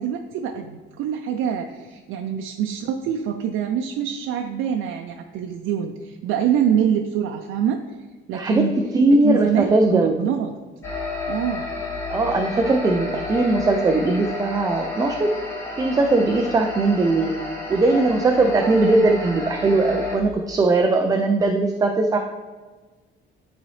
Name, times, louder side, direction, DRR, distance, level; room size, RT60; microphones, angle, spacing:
voice 1, 0.0-7.8 8.3-8.8 9.2-10.5 11.3-11.7, right 9 dB, 90° right, 3 dB, 0.5 m, -25 dB
voice 2, 8.3-8.7 8.9-10.2 12.1-15.3 15.8-17.3 17.7-22.2, right 2 dB, 15° right, 3 dB, 0.3 m, -19 dB
sound 1, 10.8-20.2, left 3 dB, 15° left, 1.4 m, -31 dB
11.0 x 4.0 x 3.2 m, 1.3 s
cardioid pair, 175°, 20 cm